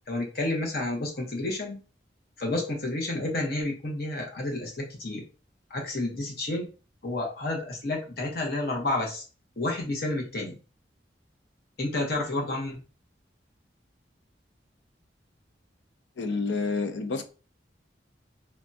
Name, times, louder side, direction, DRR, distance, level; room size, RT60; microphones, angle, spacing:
voice 1, 0.1-1.8 2.4-5.2 5.7-6.7 7.0-9.2 9.6-10.6 11.8-12.8, left 2 dB, 55° left, 1.0 m, -30 dB
voice 2, 16.2-17.2, left 4 dB, 85° left, 0.5 m, -29 dB
3.5 x 2.3 x 2.7 m
head